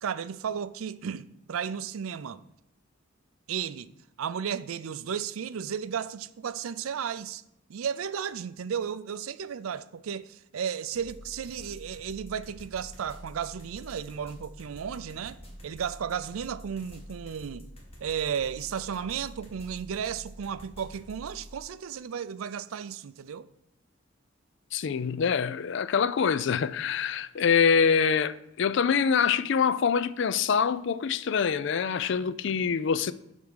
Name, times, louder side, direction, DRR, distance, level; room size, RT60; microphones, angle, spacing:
voice 1, 0.0-2.4 3.5-3.9 4.2-7.4 7.7-17.7 18.0-23.5, right 7 dB, 90° right, 0.4 m, -34 dB
sound 1, 10.9-21.6, equal, 30° left, 1.9 m, -47 dB
voice 2, 24.7-33.1, left 6 dB, 60° left, 0.4 m, -25 dB
8.1 x 3.6 x 6.2 m
head